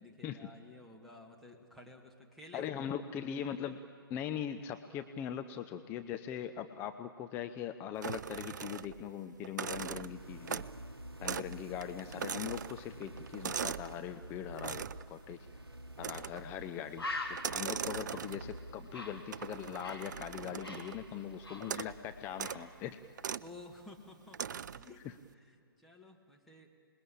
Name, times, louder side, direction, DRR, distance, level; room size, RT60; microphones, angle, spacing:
voice 1, 0.0-2.7 23.4-26.7, left 2 dB, ahead, -2 dB, 1.9 m, -54 dB
voice 2, 2.5-3.8 4.1-10.6 11.2-15.4 16.0-23.0 25.0-25.1, left 9 dB, 15° left, 8 dB, 0.6 m, -41 dB
sound 1, 8.0-9.1 9.4-10.8 11.2-11.6 11.8-14.0 14.6-15.1 16.0-16.5 17.3-18.6 19.3-21.0 21.6-22.0 22.3-22.6 23.2-23.5 24.3-24.9, right 7 dB, 50° right, 0.5 m, -40 dB
sound 2, 9.9-23.8, right 1 dB, 90° right, 0.9 m, -50 dB
Bird, 16.1-16.3 16.6-16.7 17.0-20.1 20.4-22.1 22.4-22.7, left 2 dB, 80° left, 3.7 m, -43 dB
26.5 x 21.0 x 8.6 m, 2.6 s
figure-of-eight pair, 130°, 13 cm